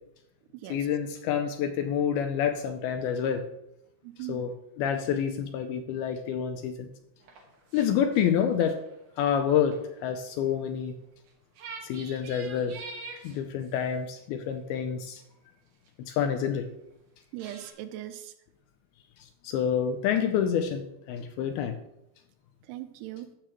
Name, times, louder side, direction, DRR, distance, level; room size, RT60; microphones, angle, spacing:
voice 1, 0.7-3.5 4.3-6.9 7.7-8.8 9.2-10.9 11.8-12.8 13.2-15.2 16.1-16.7 19.4-20.8 21.1-21.8, left 8 dB, 85° left, 7 dB, 2.3 m, -28 dB
voice 2, 4.0-4.4 17.3-18.3 22.7-23.3, right 13 dB, 90° right, 8 dB, 2.8 m, -39 dB
sound 1, 7.2-7.9 8.1-10.3 11.3-11.4 11.5-13.7 14.5-14.6 15.9-16.0 17.4-17.7, right 4 dB, 60° right, 2.7 m, -45 dB
14.5 x 6.7 x 3.0 m, 0.83 s
omnidirectional pair, 4.8 m